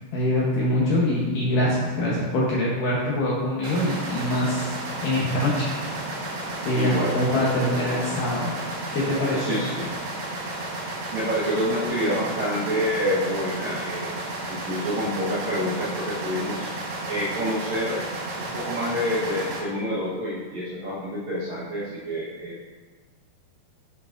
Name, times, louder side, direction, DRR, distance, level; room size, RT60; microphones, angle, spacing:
voice 1, 0.1-4.8 5.0-5.7 6.0-8.5 8.9-9.6, left 1 dB, 70° left, -5 dB, 2.0 m, -24 dB
sound 1, 3.6-19.6, right 2 dB, 80° right, 3.6 m, -33 dB
voice 2, 6.7-8.2 9.3-9.9 11.1-16.7 17.1-18.0 18.4-22.7, equal, 65° right, -9 dB, 1.8 m, -28 dB
12.0 x 5.9 x 2.5 m, 1.4 s
omnidirectional pair, 4.9 m